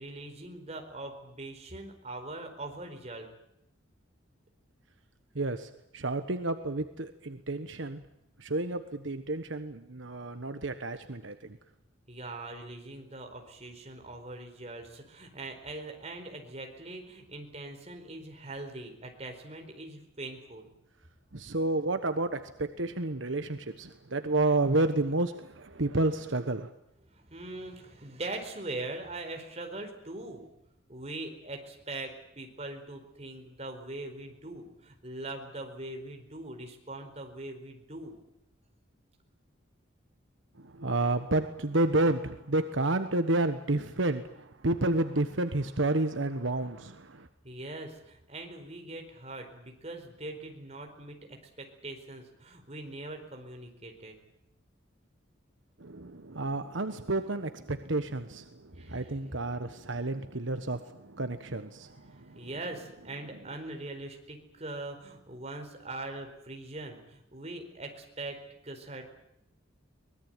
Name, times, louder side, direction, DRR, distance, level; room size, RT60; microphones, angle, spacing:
voice 1, 0.0-3.3 12.1-20.7 27.1-30.5 30.9-38.2 47.4-54.2 58.7-59.1 62.0-69.1, right 2 dB, 35° right, 4 dB, 4.5 m, -42 dB
voice 2, 5.3-8.0 8.4-11.6 21.3-26.7 40.6-47.3 55.8-62.5, right 2 dB, 75° right, 9 dB, 1.3 m, -30 dB
23.5 x 20.5 x 9.1 m, 0.81 s
head